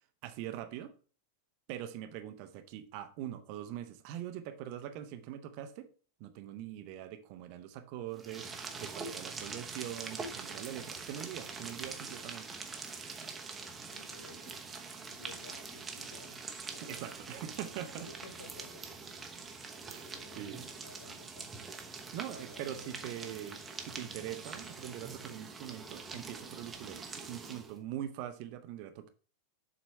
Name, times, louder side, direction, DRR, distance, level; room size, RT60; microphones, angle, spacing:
voice 1, 0.2-0.9 1.7-5.9 6.2-12.5 16.8-18.1 19.9-20.1 20.3-20.6 22.1-29.1, right 11 dB, 45° right, 0.8 m, -43 dB
sound 1, 8.1-27.8, right 4 dB, 15° right, 1.0 m, -44 dB
voice 2, 13.9-14.7 15.0-17.2 18.0-19.2 20.0-21.9 22.3-23.3, left 4 dB, 70° left, 0.8 m, -55 dB
7.4 x 4.1 x 4.5 m
figure-of-eight pair, 90°, 0 cm